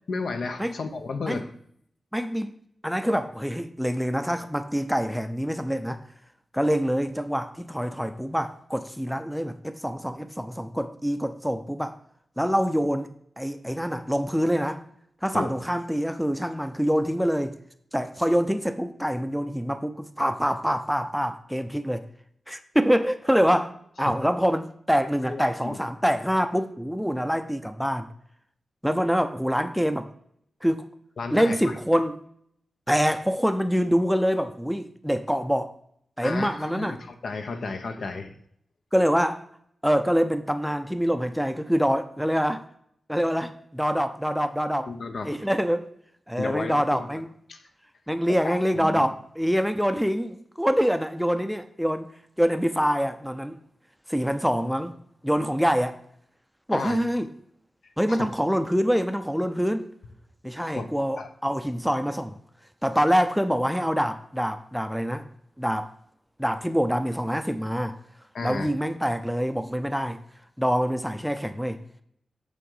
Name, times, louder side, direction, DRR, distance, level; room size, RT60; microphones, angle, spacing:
voice 1, 0.1-1.5 15.3-15.5 24.1-24.2 25.3-25.8 31.2-31.7 36.2-38.3 44.9-45.3 46.4-47.2 47.5-47.6 48.4-49.1 56.7-57.0 58.1-58.3 60.6-60.9 61.2-61.3 68.3-68.7, left 4 dB, 75° left, 7 dB, 0.8 m, -33 dB
voice 2, 2.1-2.5 2.8-6.0 6.5-12.0 12.4-13.1 13.4-14.8 15.2-17.6 17.9-22.0 22.5-28.1 28.8-30.1 30.6-30.8 31.3-32.2 32.9-35.7 36.2-37.0 38.9-39.4 39.8-42.6 43.1-44.9 45.2-45.9 46.3-47.3 48.1-52.1 52.4-53.6 54.1-54.9 55.2-56.0 56.7-57.3 58.0-59.9 60.4-62.4 62.8-65.2 65.6-65.9 66.4-68.0 68.4-70.2 70.6-71.8, equal, ahead, 8 dB, 0.5 m, -25 dB
8.5 x 3.7 x 5.4 m, 0.68 s
wide cardioid pair, 120°, 0 cm